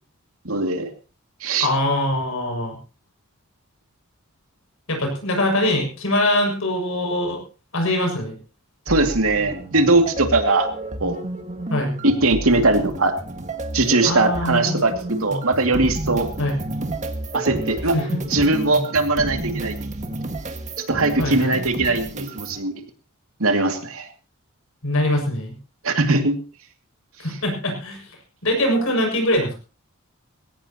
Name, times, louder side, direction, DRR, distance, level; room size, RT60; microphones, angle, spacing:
voice 1, 0.4-0.9 1.4-1.7 8.9-10.7 11.0-11.2 12.0-13.2 13.7-16.3 17.3-18.0 18.3-19.7 20.9-22.8 23.4-24.1 25.8-26.4, right 2 dB, 75° right, 5 dB, 2.4 m, -20 dB
voice 2, 1.6-2.7 4.9-7.4 7.7-8.3 11.7-11.9 14.0-14.8 16.4-16.6 17.9-18.1 21.2-21.6 24.8-25.5 27.2-28.0 28.4-29.6, left 1 dB, 70° left, 2 dB, 6.5 m, -22 dB
sound 1, 8.9-22.6, right 1 dB, 35° right, 1.8 m, -31 dB
20.5 x 17.0 x 3.0 m, 0.35 s
head